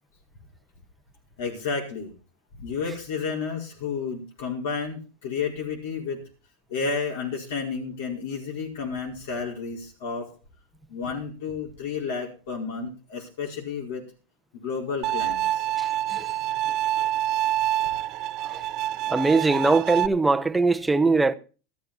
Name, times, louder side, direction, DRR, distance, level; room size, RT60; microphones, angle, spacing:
voice 1, 1.4-2.1 2.5-6.2 6.7-10.3 10.9-14.0 14.5-15.6, left 5 dB, 75° left, 4.8 m, -31 dB
Bowed string instrument, 15.0-20.1, right 13 dB, 45° right, 0.9 m, -26 dB
voice 2, 15.8-16.3 17.9-18.0 18.4-18.6 19.1-21.3, right 3 dB, 10° right, 0.9 m, -22 dB
13.5 x 12.5 x 4.3 m
supercardioid pair, 130°, 0 cm